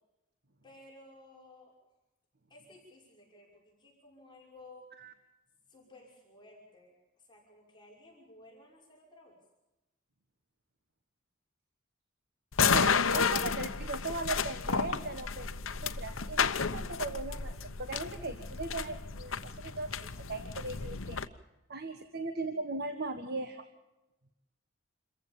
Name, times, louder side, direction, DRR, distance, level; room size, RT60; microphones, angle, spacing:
voice 1, 0.6-1.7 2.5-4.9 5.7-9.4, left 2 dB, 20° left, -3 dB, 5.8 m, -56 dB
sound 1, 12.5-21.3, left 6 dB, 70° left, 1.0 m, -32 dB
voice 2, 12.6-15.5 15.8-21.2 21.7-23.6, right 2 dB, 50° right, 7 dB, 1.5 m, -38 dB
27.5 x 15.0 x 7.2 m, 0.98 s
head